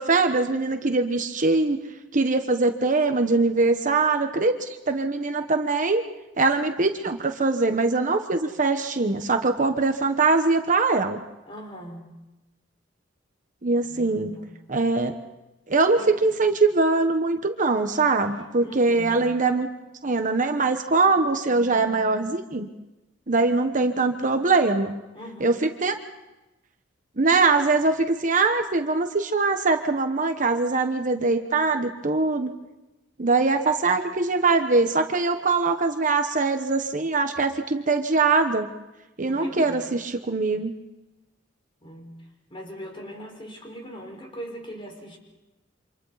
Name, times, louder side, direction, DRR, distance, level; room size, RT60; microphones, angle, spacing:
voice 1, 0.0-1.8 2.1-6.0 6.4-11.2 13.6-14.4 14.7-15.1 15.7-19.7 20.0-22.7 23.3-25.0 25.4-26.0 27.2-32.5 33.2-38.7 39.2-40.7, right 3 dB, 45° right, 6 dB, 1.2 m, -22 dB
voice 2, 11.5-12.1 13.9-14.5 15.9-16.1 18.2-19.2 25.1-25.6 39.3-39.9 41.8-42.2 42.5-45.2, equal, 30° left, 1 dB, 5.0 m, -39 dB
29.0 x 26.5 x 4.1 m, 0.99 s
head